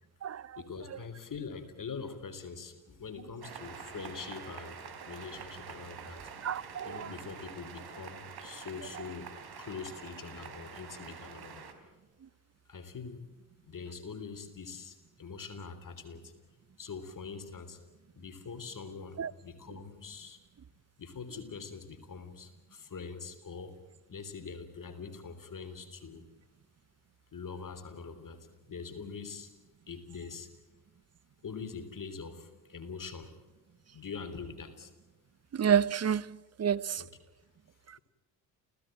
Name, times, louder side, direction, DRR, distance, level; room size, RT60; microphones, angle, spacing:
voice 1, 0.6-4.8 5.1-6.3 6.8-9.3 9.6-11.7 12.7-13.3 13.6-16.3 16.8-17.8 18.2-20.4 21.0-23.8 24.1-26.2 27.3-28.4 28.7-29.5 29.9-30.5 31.4-33.3 33.9-34.9 36.9-37.1, left 5 dB, 45° left, 3.5 m, -43 dB
sound 1, 3.4-11.7, right 6 dB, 55° right, 3.9 m, -47 dB
voice 2, 6.4-7.1 19.2-19.3 35.5-36.2 36.6-37.0, right 8 dB, 35° right, 0.9 m, -28 dB
29.5 x 16.5 x 9.0 m
hypercardioid pair, 55°, 46 cm